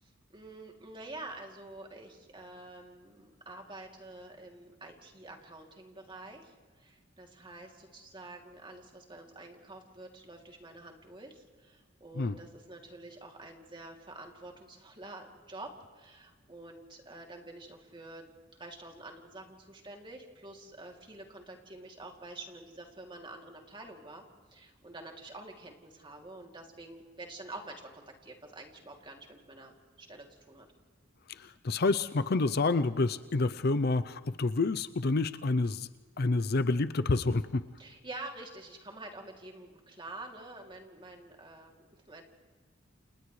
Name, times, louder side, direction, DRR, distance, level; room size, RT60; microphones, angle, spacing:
voice 1, 0.0-18.3 18.6-24.2 24.5-30.7 37.8-42.2, right 2 dB, 25° right, 1 dB, 2.8 m, -48 dB
voice 2, 31.4-35.9 36.2-37.6, left 3 dB, 55° left, 13 dB, 0.6 m, -28 dB
29.5 x 28.5 x 3.3 m, 1.5 s
head